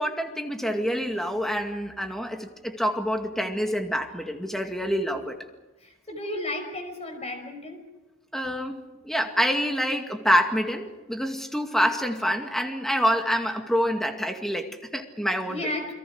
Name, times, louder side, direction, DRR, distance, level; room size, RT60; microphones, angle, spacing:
voice 1, 0.0-5.4 8.3-15.7, equal, ahead, 4 dB, 2.2 m, -27 dB
voice 2, 5.8-7.8 15.5-15.9, left 1 dB, 35° left, 6 dB, 5.2 m, -33 dB
29.5 x 22.5 x 4.9 m, 1.1 s
head